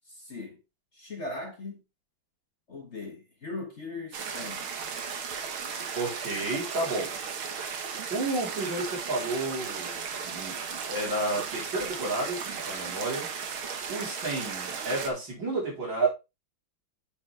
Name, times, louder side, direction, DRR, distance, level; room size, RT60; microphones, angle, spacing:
voice 1, 0.1-0.6 0.9-1.8 2.7-4.7, left 2 dB, 40° left, 1.5 m, -39 dB
sound 1, 4.1-15.1, right 6 dB, 90° right, 2.1 m, -36 dB
voice 2, 5.9-7.2 8.1-13.3 13.9-16.1, right 2 dB, 65° right, 4.7 m, -31 dB
8.4 x 5.9 x 3.4 m
omnidirectional pair, 2.2 m